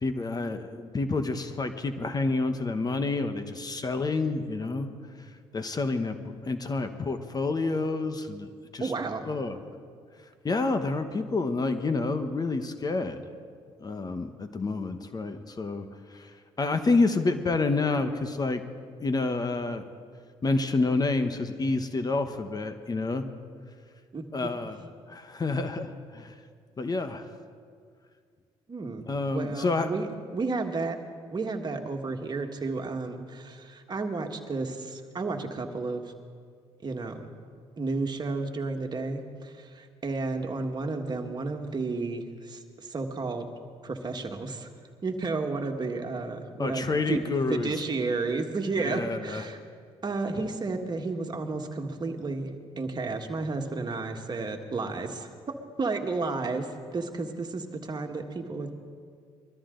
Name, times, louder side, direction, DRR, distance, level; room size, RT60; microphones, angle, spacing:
voice 1, 0.0-4.9 5.5-8.9 9.3-9.6 10.4-13.2 13.8-18.6 19.0-19.9 20.4-23.3 24.3-24.8 25.1-26.4 26.8-27.3 29.1-29.9 46.6-47.8 48.8-49.4, left 3 dB, 35° left, 8 dB, 1.1 m, -29 dB
voice 2, 8.8-9.3 24.1-24.5 28.7-29.0 29.3-30.1 30.3-31.0 31.3-36.0 36.8-37.3 37.8-43.5 43.8-44.7 45.0-47.2 47.5-49.6 50.0-52.5 52.8-58.7, right 3 dB, 35° right, 4 dB, 1.7 m, -32 dB
22.0 x 13.0 x 3.9 m, 2.1 s
supercardioid pair, 65°, 12 cm